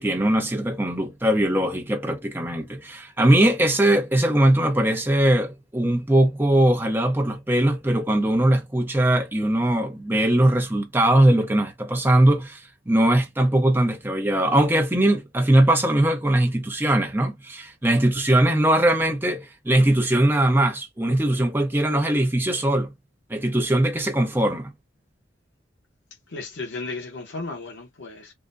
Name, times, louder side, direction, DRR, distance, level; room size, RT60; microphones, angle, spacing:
voice 1, 0.0-22.9 23.3-24.7, right 1 dB, 10° right, 0.7 m, -20 dB
voice 2, 26.3-28.3, left 3 dB, 80° left, 0.9 m, -34 dB
3.6 x 2.1 x 2.5 m
head